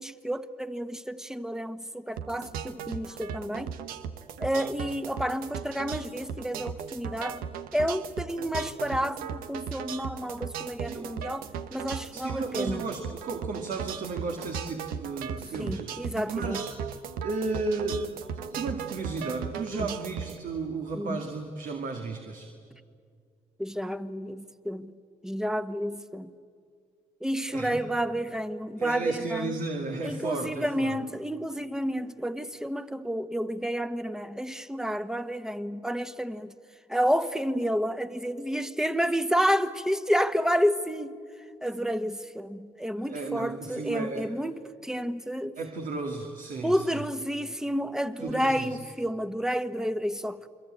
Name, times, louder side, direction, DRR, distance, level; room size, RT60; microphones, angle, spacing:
voice 1, 0.0-3.7 4.4-7.4 7.7-12.8 15.6-16.6 19.7-19.9 21.0-21.2 23.6-24.9 25.2-26.3 27.2-29.6 30.0-36.5 36.9-41.2 41.6-45.6 46.6-50.5, equal, 5° right, 1.2 m, -30 dB
sound 1, 2.2-20.4, right 7 dB, 90° right, 1.1 m, -37 dB
voice 2, 10.8-11.2 12.1-16.8 17.2-22.5 27.5-27.8 28.8-30.9 43.1-44.3 45.6-47.0 48.2-48.8, right 3 dB, 65° right, 2.2 m, -34 dB
29.0 x 22.0 x 8.9 m
supercardioid pair, 70°, 15 cm